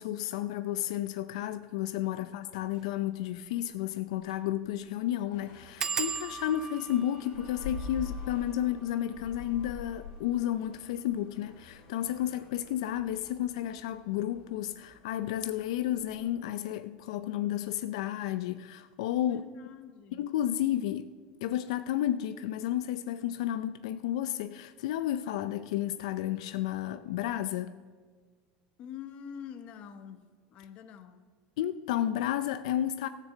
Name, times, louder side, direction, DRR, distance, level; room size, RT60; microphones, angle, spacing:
voice 1, 0.0-19.7 20.2-21.1 21.4-27.7 31.6-33.1, left 12 dB, 80° left, 0.5 m, -32 dB
sound 1, 2.6-2.8 3.2-3.3 3.6-3.7 4.2-4.5 4.7-4.8 5.8-11.1 11.7-12.3 12.6-12.9 13.2-13.3, right 6 dB, 20° right, 0.3 m, -40 dB
sound 2, 5.3-16.3, left 3 dB, 60° left, 3.4 m, -46 dB
voice 2, 19.3-20.3 28.8-31.3, left 8 dB, 40° left, 0.9 m, -46 dB
14.0 x 6.7 x 7.3 m
supercardioid pair, 160°, 3 cm